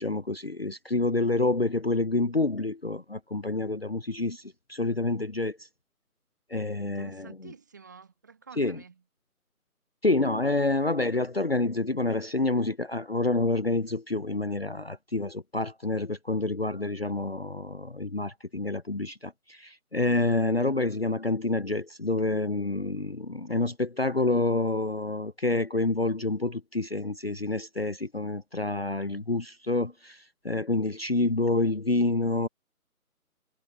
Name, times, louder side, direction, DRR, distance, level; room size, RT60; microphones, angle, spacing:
voice 1, 0.0-5.6 6.5-7.3 8.6-8.8 10.0-32.5, left 2 dB, 40° left, 0.7 m, -28 dB
voice 2, 6.8-9.0, right 6 dB, 10° right, 1.7 m, -49 dB
figure-of-eight pair, 160°, 45 cm